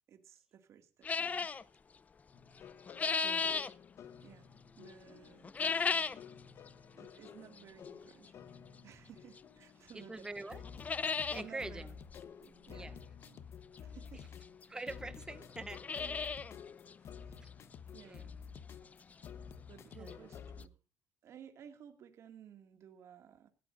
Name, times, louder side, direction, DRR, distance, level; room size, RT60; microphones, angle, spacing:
voice 1, 0.1-1.5 3.5-3.6 4.2-4.5 4.8-5.6 6.9-8.4 8.8-10.4 11.0-12.0 12.4-12.9 13.3-13.4 13.8-14.3 16.0-16.3 17.0-17.4 17.9-18.3 19.7-20.7 21.2-23.5, right 9 dB, 55° right, 2.2 m, -56 dB
sound 1, 1.0-1.6 2.6-3.7 5.4-6.3 6.7-6.8 7.6-7.7 9.4-9.5 9.9-10.0 10.3-10.4 10.6-11.4 11.8-11.9 12.1-12.2 13.8-13.9 14.6-14.7 14.9-15.0 15.5-16.5 16.9-17.0 17.5-17.6 18.0-18.1 19.8-19.9 20.1-20.2 20.6-20.7, left 5 dB, 25° left, 0.6 m, -34 dB
sound 2, 2.3-20.7, left 7 dB, 50° left, 1.1 m, -52 dB
voice 2, 9.9-10.6 11.3-11.9 12.7-13.0 14.7-16.2 17.4-17.5 18.0-18.2 20.0-20.3, right 2 dB, 10° right, 0.8 m, -45 dB
19.5 x 14.0 x 2.6 m
cardioid pair, 125°, 6 cm